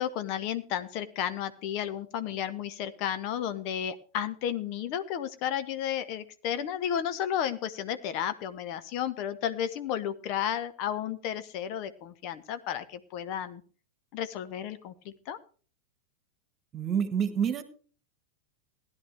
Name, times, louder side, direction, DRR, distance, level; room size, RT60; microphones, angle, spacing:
voice 1, 0.0-13.6 14.1-15.4, left 9 dB, 45° left, 12 dB, 0.9 m, -33 dB
voice 2, 16.7-17.6, right 7 dB, 25° right, 11 dB, 1.7 m, -27 dB
16.5 x 11.0 x 3.4 m, 0.39 s
figure-of-eight pair, 90°, 0 cm